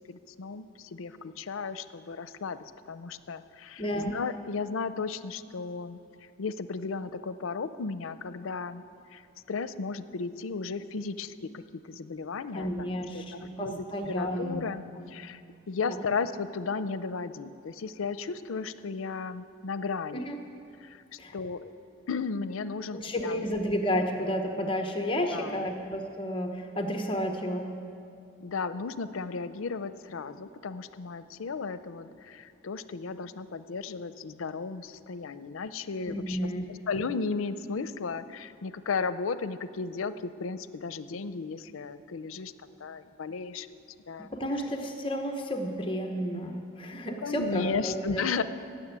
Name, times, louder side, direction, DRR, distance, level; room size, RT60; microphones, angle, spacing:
voice 1, 0.1-2.6 2.9-6.0 6.4-8.8 9.1-9.2 9.5-14.8 15.1-15.4 15.7-20.3 20.8-21.0 21.3-21.7 22.1-23.4 25.3-25.6 28.4-42.5 42.8-43.7 44.1-44.3 47.2-48.4, left 4 dB, 85° left, 13 dB, 0.5 m, -35 dB
voice 2, 3.8-4.1 12.5-14.6 14.9-15.1 15.8-16.0 20.1-20.4 21.2-21.3 22.9-27.8 36.1-36.8 44.2-48.3, equal, 25° left, 3 dB, 0.9 m, -32 dB
15.5 x 7.0 x 9.2 m, 2.5 s
head